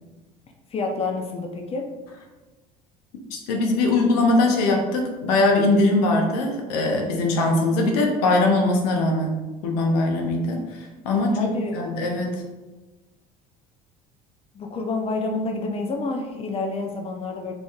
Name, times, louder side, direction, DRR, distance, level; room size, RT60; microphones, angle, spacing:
voice 1, 0.7-1.9 11.2-12.0 14.5-17.5, left 3 dB, 30° left, 3 dB, 0.6 m, -28 dB
voice 2, 3.3-10.6 11.0-11.5 11.7-12.3, left 2 dB, 80° left, 2 dB, 0.7 m, -21 dB
4.0 x 3.3 x 2.4 m, 1.2 s
hypercardioid pair, 75°, 20 cm